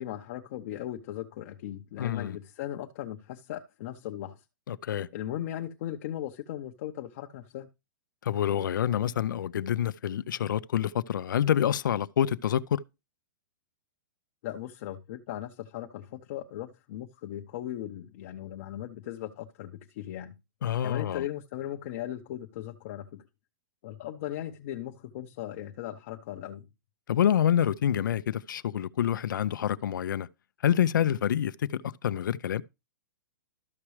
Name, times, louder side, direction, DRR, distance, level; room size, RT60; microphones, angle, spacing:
voice 1, 0.0-4.4 5.1-7.7 14.4-20.3 20.8-23.2 23.8-26.6, left 12 dB, 45° left, 0.8 m, -38 dB
voice 2, 2.0-2.4 4.7-5.1 8.2-12.8 20.6-21.2 27.1-30.3 30.6-32.6, left 10 dB, 80° left, 0.6 m, -27 dB
13.0 x 5.9 x 3.2 m
hypercardioid pair, 160°, 10 cm